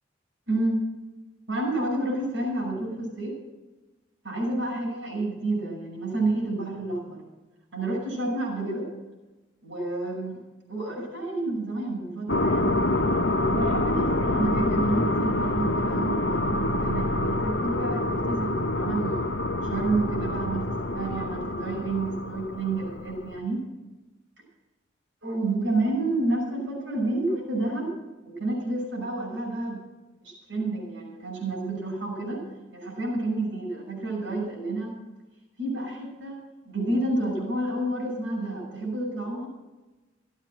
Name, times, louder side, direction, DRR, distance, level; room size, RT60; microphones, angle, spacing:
voice 1, 0.5-0.8 1.5-3.4 4.2-7.2 7.7-8.9 9.6-10.4 10.7-12.8 13.5-23.6 25.2-27.9 28.2-29.8 30.2-32.4 32.7-35.0 35.6-36.4 36.6-39.5, right 2 dB, 85° right, -3 dB, 6.1 m, -29 dB
sound 1, 12.3-23.4, left 2 dB, 70° left, 0.8 m, -26 dB
16.0 x 8.3 x 7.7 m, 1.1 s
head